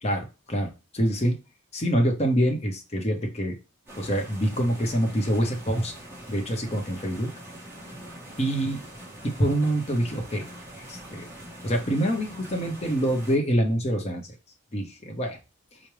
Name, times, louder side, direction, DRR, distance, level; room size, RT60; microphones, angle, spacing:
voice 1, 0.5-1.4 1.7-3.5 4.0-5.9 6.3-7.3 8.4-8.8 9.2-10.5 10.9-11.3 11.6-14.3 14.7-15.4, equal, 30° left, 2 dB, 0.7 m, -25 dB
sound 1, 3.9-13.4, right 1 dB, 10° right, 1.0 m, -43 dB
4.7 x 2.1 x 3.0 m, 0.30 s
head